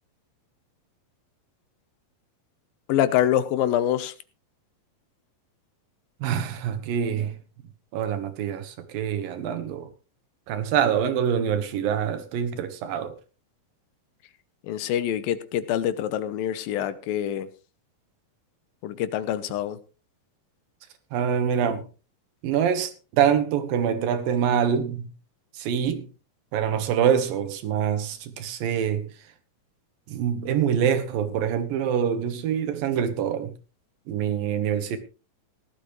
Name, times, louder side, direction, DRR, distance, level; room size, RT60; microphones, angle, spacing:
voice 1, 2.9-4.1 14.6-17.5 18.8-19.8, left 11 dB, 85° left, 2.7 m, -25 dB
voice 2, 6.2-7.4 7.9-9.9 10.5-13.1 21.1-21.9 22.4-25.1 25.5-26.1 26.5-29.1 30.1-33.5 34.1-35.0, right 8 dB, 80° right, 3.0 m, -25 dB
17.0 x 12.0 x 3.2 m
omnidirectional pair, 4.1 m